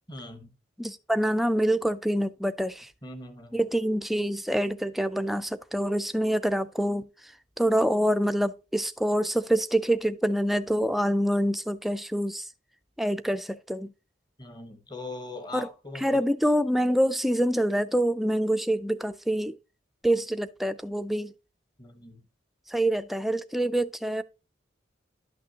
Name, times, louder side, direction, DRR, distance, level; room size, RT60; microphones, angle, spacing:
voice 1, 0.1-0.5 3.0-3.6 14.4-16.2 21.8-22.2, left 2 dB, 20° left, 1.1 m, -41 dB
voice 2, 0.8-2.9 3.5-7.3 7.6-12.5 13.0-13.9 15.5-15.7 16.0-19.6 20.0-21.3 22.7-24.2, right 1 dB, ahead, 0.3 m, -26 dB
11.5 x 6.0 x 2.8 m
head